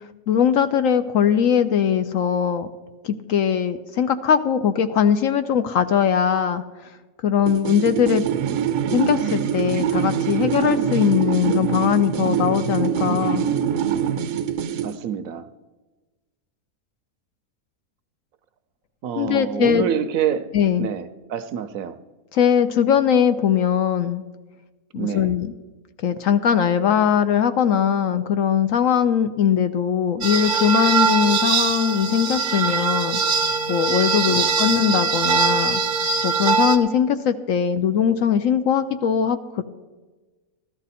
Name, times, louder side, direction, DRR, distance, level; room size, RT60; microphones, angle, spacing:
voice 1, 0.3-2.7 3.0-6.6 7.2-8.2 8.9-13.4 19.2-19.8 20.5-20.9 22.3-24.2 24.9-25.5 26.0-33.2 33.7-39.6, left 8 dB, 65° left, 10 dB, 0.9 m, -20 dB
sound 1, 7.5-15.0, right 8 dB, 90° right, 1.2 m, -24 dB
voice 2, 14.8-15.5 19.0-20.5 20.8-22.0 24.9-25.3 34.3-34.6, right 8 dB, 70° right, 11 dB, 0.9 m, -27 dB
sound 2, 30.2-36.8, right 5 dB, 45° right, 0.6 m, -21 dB
14.0 x 13.0 x 4.2 m, 1.2 s
omnidirectional pair, 1.7 m